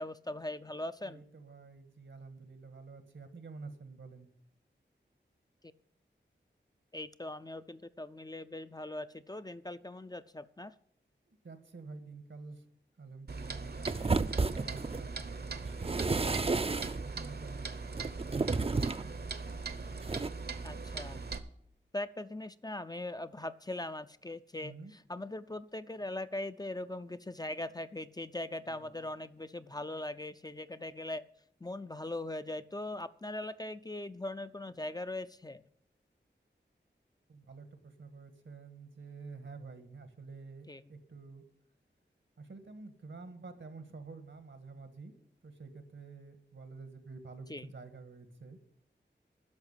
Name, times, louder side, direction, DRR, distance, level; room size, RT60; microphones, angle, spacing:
voice 1, 0.0-1.2 6.9-10.7 20.6-21.2 21.9-24.7 25.1-31.3 31.6-35.6 40.7-40.8 47.5-47.7, left 1 dB, 20° left, 11 dB, 0.5 m, -40 dB
voice 2, 1.0-4.3 11.3-12.6 13.0-16.2 17.0-18.5 24.6-24.9 28.7-29.0 37.3-41.4 42.4-45.1 45.4-48.6, right 4 dB, 75° right, 8 dB, 1.6 m, -49 dB
Clock, 13.3-21.4, right 4 dB, 55° right, 0.9 m, -40 dB
sound 1, 13.9-15.1 15.6-17.1 17.9-19.1 20.0-20.3, right 3 dB, 30° right, 0.5 m, -32 dB
10.5 x 6.4 x 9.0 m, 0.68 s
wide cardioid pair, 65°, 19 cm